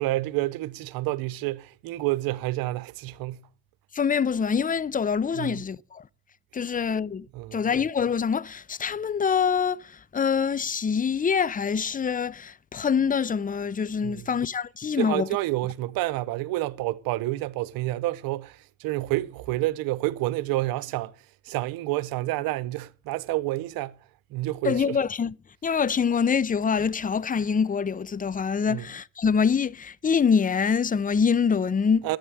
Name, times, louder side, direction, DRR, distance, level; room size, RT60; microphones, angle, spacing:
voice 1, 0.0-3.5 5.3-5.7 6.7-6.8 7.3-7.6 14.0-14.4 14.9-21.1 21.4-24.0 24.3-25.0 28.7-28.9 32.0-32.2, right 17 dB, 80° right, 0.8 m, -29 dB
voice 2, 3.9-6.0 6.5-15.3 24.6-25.4 25.6-32.2, left 6 dB, 25° left, 0.6 m, -25 dB
11.0 x 8.9 x 7.6 m
supercardioid pair, 55°, 34 cm